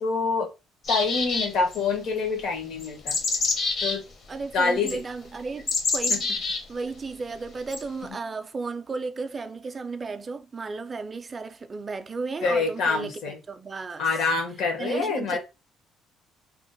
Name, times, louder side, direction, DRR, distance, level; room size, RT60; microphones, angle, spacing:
voice 1, 0.0-0.5 0.9-3.2 3.8-4.0 4.5-5.0 6.1-6.2 12.4-13.4 14.0-15.4, left 4 dB, 65° left, 1.0 m, -26 dB
sound 1, 0.8-1.8 2.8-4.0 4.9-5.0 5.7-6.6 7.7-7.8, left 3 dB, 45° left, 0.8 m, -26 dB
voice 2, 4.3-6.3 6.7-14.0 14.8-15.4, right 4 dB, 25° right, 0.3 m, -34 dB
2.9 x 2.1 x 3.8 m
cardioid pair, 155°, 0 cm